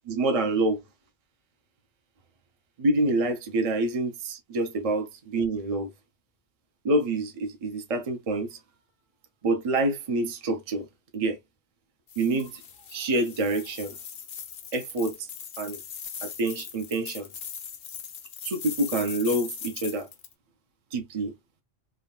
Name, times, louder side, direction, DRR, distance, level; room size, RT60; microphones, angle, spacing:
voice 1, 0.1-0.8 2.8-5.9 6.8-8.6 9.4-10.9 11.1-11.4 12.2-12.5 12.9-13.9 14.7-15.2 15.6-15.8 16.2-17.3 18.4-20.1 20.9-21.3, right 2 dB, 40° right, 0.6 m, -27 dB
sound 1, 12.1-20.3, left 7 dB, 65° left, 0.8 m, -40 dB
3.5 x 2.2 x 2.2 m
omnidirectional pair, 1.1 m